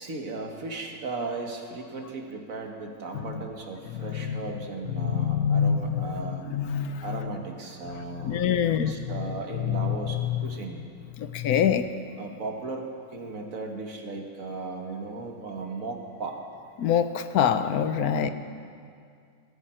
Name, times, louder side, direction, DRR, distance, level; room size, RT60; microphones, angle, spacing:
voice 1, 0.0-6.5 7.0-10.8 12.2-16.4 18.0-18.3, right 3 dB, 60° right, 3 dB, 1.7 m, -36 dB
voice 2, 3.9-4.4 4.9-7.3 8.2-8.9 9.7-9.8 10.1-10.4 11.2-11.9 16.8-18.3, left 8 dB, 75° left, 10 dB, 1.2 m, -26 dB
19.0 x 13.5 x 4.4 m, 2.3 s
omnidirectional pair, 1.6 m